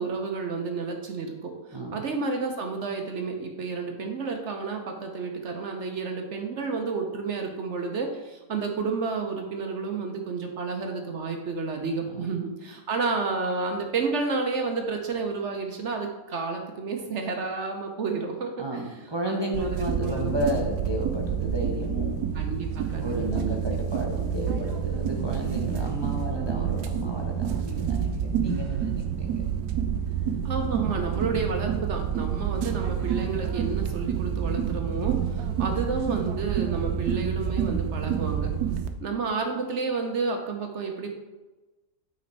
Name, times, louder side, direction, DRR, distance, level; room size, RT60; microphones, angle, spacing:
voice 1, 0.0-18.8 19.3-20.6 22.3-23.7 30.4-38.5 39.0-41.1, right 4 dB, 55° right, 3 dB, 0.9 m, -31 dB
voice 2, 1.7-2.0 12.1-12.3 18.6-22.2 23.0-29.5 31.1-31.6, equal, 30° right, -1 dB, 0.5 m, -33 dB
sound 1, 19.5-38.9, right 8 dB, 85° right, 1.2 m, -28 dB
8.6 x 4.3 x 3.9 m, 1.1 s
omnidirectional pair, 1.7 m